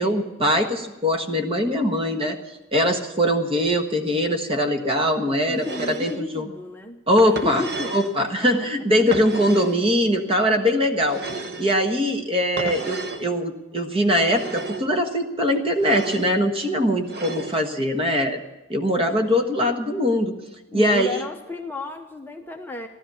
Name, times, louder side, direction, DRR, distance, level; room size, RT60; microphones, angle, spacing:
voice 1, 0.0-6.5 7.1-7.6 7.9-11.2 11.6-18.4 18.7-20.3 20.7-21.1, equal, 25° right, 5 dB, 1.4 m, -22 dB
voice 2, 5.1-7.9 8.2-8.7 20.7-22.9, left 2 dB, 10° left, 2 dB, 0.8 m, -33 dB
sound 1, 5.6-6.2 7.2-8.2 9.1-9.8 11.1-11.7 12.6-13.3 14.2-14.9 15.8-16.3 17.1-17.6, right 3 dB, 50° right, 1.1 m, -33 dB
16.0 x 12.0 x 7.0 m, 1.1 s
head